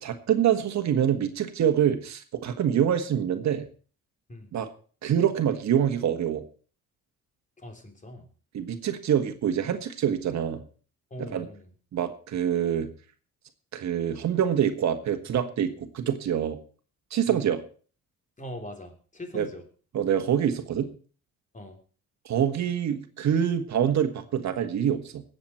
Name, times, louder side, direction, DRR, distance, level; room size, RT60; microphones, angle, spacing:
voice 1, 0.0-3.7 4.5-4.7 5.0-6.4 8.5-10.6 11.2-11.5 11.9-12.9 13.7-16.6 17.1-17.6 19.3-19.5 19.9-20.9 22.2-25.2, right 9 dB, 65° right, 8 dB, 1.6 m, -25 dB
voice 2, 7.6-8.3 11.1-11.7 17.3-17.5 18.4-19.7 21.5-21.8, left 1 dB, 25° left, 5 dB, 3.4 m, -41 dB
19.5 x 8.0 x 4.4 m, 0.40 s
cardioid pair, 90°, 30 cm